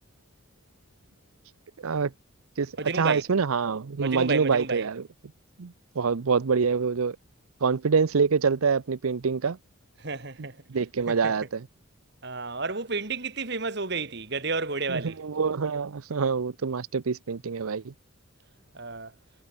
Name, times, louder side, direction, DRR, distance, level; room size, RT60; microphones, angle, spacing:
voice 1, 1.8-2.1 2.6-5.0 5.6-7.2 7.6-9.6 10.7-11.7 14.9-17.9, right 5 dB, 85° right, 0.6 m, -26 dB
voice 2, 2.8-3.2 4.0-4.9 10.0-10.6 11.1-11.2 12.2-15.2 18.7-19.1, right 3 dB, 50° right, 2.3 m, -31 dB
head